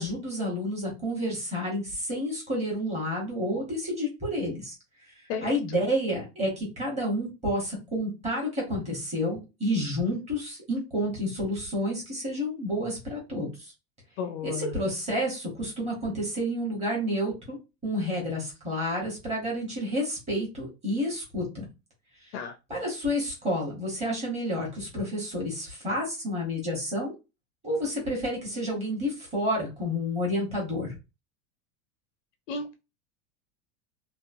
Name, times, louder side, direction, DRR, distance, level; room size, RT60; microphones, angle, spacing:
voice 1, 0.0-4.7 5.4-13.7 14.4-21.7 22.2-22.4 22.7-27.1 27.6-30.9, equal, 15° right, -3 dB, 1.0 m, -30 dB
voice 2, 14.2-14.7 22.3-22.5 32.5-32.7, left 6 dB, 55° left, 6 dB, 0.5 m, -33 dB
2.9 x 2.1 x 2.5 m, 0.26 s
supercardioid pair, 170°, 44 cm